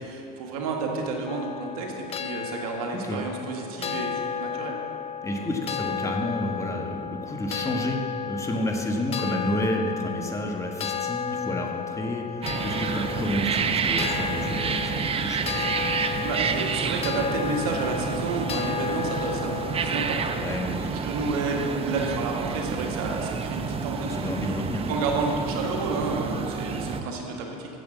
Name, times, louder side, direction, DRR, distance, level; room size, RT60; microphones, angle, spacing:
voice 1, 0.0-4.8 16.2-20.2 20.7-24.2 24.9-27.7, right 3 dB, 85° right, 0 dB, 1.7 m, -30 dB
sound 1, 1.3-20.7, left 7 dB, 35° left, 0.6 m, -33 dB
voice 2, 5.2-8.0 8.2-15.7 20.4-20.9 24.0-24.9, left 1 dB, 15° left, 2 dB, 1.6 m, -30 dB
sound 2, 12.4-27.0, right 6 dB, 30° right, 0.7 m, -29 dB
9.3 x 7.6 x 7.4 m, 2.6 s
supercardioid pair, 90°, 18 cm